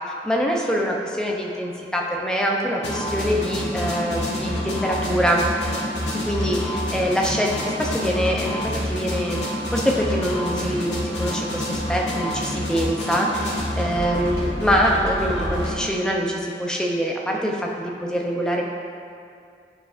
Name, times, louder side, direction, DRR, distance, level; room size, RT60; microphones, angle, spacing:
voice 1, 0.2-5.4 6.2-9.4 9.7-18.6, equal, 5° left, -1 dB, 0.5 m, -24 dB
sound 1, 2.8-15.8, left 1 dB, 85° left, 1.5 m, -27 dB
9.3 x 4.9 x 2.5 m, 2.4 s
head